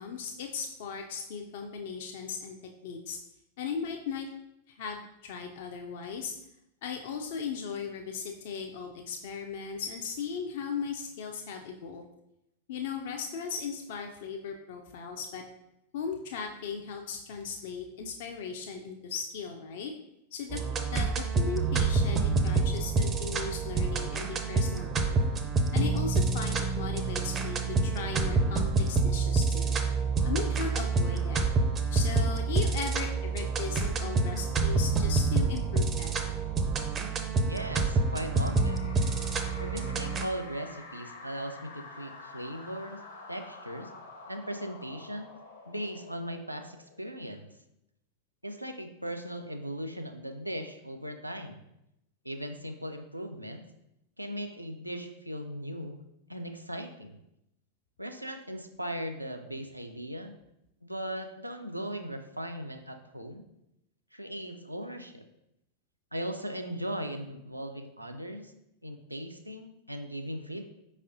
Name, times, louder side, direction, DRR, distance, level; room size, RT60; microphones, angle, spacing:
voice 1, 0.0-2.6 2.8-3.2 3.6-4.3 4.7-6.3 6.8-12.1 12.7-15.4 15.9-19.9 20.3-25.2 25.7-29.8 30.2-31.4 31.9-36.2, left 6 dB, 55° left, 3 dB, 0.4 m, -37 dB
sound 1, 20.5-40.3, right 3 dB, 25° right, 0.4 m, -27 dB
voice 2, 37.4-38.9 39.6-43.0 43.3-43.9 44.3-45.3 45.7-47.5 48.4-51.6 52.2-53.6 54.2-56.0 56.3-57.2 58.0-60.3 60.8-63.5 64.1-65.2 66.1-68.5 68.8-70.7, equal, 85° right, 5 dB, 0.4 m, -38 dB
sound 2, 37.5-47.2, left 3 dB, 70° left, 0.9 m, -48 dB
5.1 x 4.1 x 2.6 m, 0.84 s
figure-of-eight pair, 90°, 0 cm